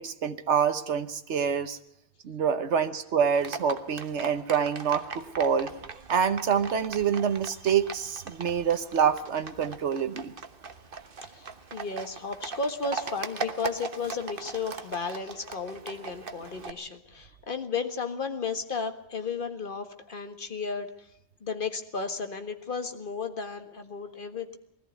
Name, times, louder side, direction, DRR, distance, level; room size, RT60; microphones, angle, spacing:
voice 1, 0.0-1.8 2.2-5.7 6.1-10.3, right 7 dB, 90° right, 9 dB, 1.3 m, -26 dB
Livestock farm animals working animals, 3.3-16.7, right 4 dB, 55° right, 1.4 m, -40 dB
voice 2, 11.3-21.1 21.4-24.6, left 5 dB, 50° left, 7 dB, 1.8 m, -34 dB
20.5 x 14.5 x 9.4 m, 0.75 s
omnidirectional pair, 1.1 m